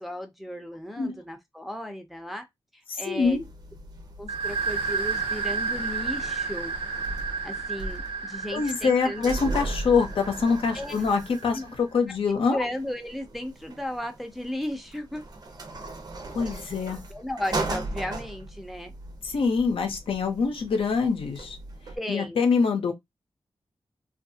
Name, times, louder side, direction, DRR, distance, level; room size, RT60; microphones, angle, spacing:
voice 1, 0.0-2.5 2.7-3.4 4.2-6.7 7.4-9.3 10.7-11.1 11.5-11.6 12.1-12.2 12.5-15.2 17.1-18.9 22.0-22.4, left 1 dB, ahead, 0.5 m, -35 dB
voice 2, 2.9-3.4 8.5-12.6 16.3-17.0 19.2-21.6 22.1-22.9, left 5 dB, 70° left, 0.7 m, -25 dB
sound 1, 3.2-22.0, right 2 dB, 45° right, 0.7 m, -38 dB
sound 2, 4.3-11.8, right 5 dB, 85° right, 0.8 m, -32 dB
2.7 x 2.4 x 2.7 m
wide cardioid pair, 140°, 9 cm